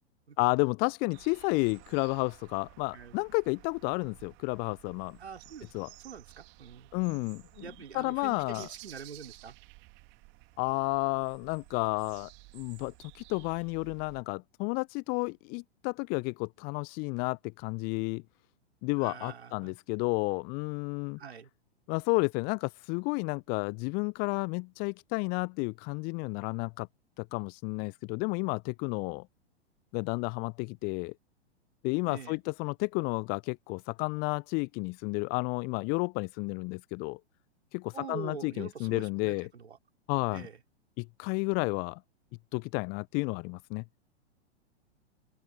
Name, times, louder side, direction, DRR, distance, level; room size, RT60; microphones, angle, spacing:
voice 1, 0.4-5.2 5.7-5.9 6.9-8.7 10.6-18.2 18.8-21.2 21.9-26.9 27.2-29.3 29.9-31.1 31.8-37.2 37.7-39.5 40.1-40.5 41.0-42.0 42.5-43.8, left 31 dB, 30° left, 0.7 m, -31 dB
sound 1, 1.1-14.2, right 27 dB, 35° right, 2.1 m, -54 dB
voice 2, 5.2-5.7 6.0-7.3 7.6-9.6 19.0-19.8 21.2-21.5 32.1-32.4 37.9-39.8 40.3-40.6, right 6 dB, 70° right, 3.7 m, -45 dB
open air
figure-of-eight pair, 105°, 34 cm